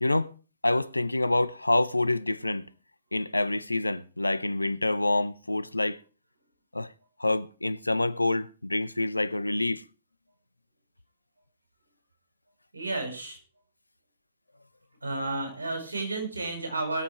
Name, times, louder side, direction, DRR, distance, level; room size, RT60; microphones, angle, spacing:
voice 1, 0.0-0.3 0.6-2.7 3.1-6.0 6.7-6.9 7.2-9.8, left 2 dB, 85° left, 0.5 m, -27 dB
voice 2, 12.7-13.4 15.0-17.0, right 2 dB, 75° right, 4.7 m, -32 dB
20.0 x 7.6 x 4.7 m
figure-of-eight pair, 105°, 0 cm